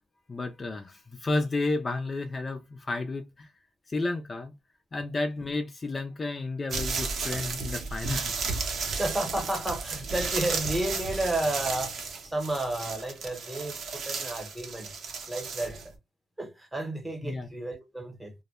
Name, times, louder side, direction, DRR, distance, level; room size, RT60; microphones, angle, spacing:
voice 1, 0.3-3.5 3.9-4.5 4.9-8.3 17.2-17.5, left 3 dB, 30° left, 0.4 m, -32 dB
sound 1, 6.7-15.9, right 4 dB, 60° right, 0.7 m, -33 dB
voice 2, 9.0-14.9 15.3-15.9 16.4-18.3, right 1 dB, 10° right, 0.9 m, -32 dB
2.2 x 2.0 x 2.9 m
cardioid pair, 90°, 0 cm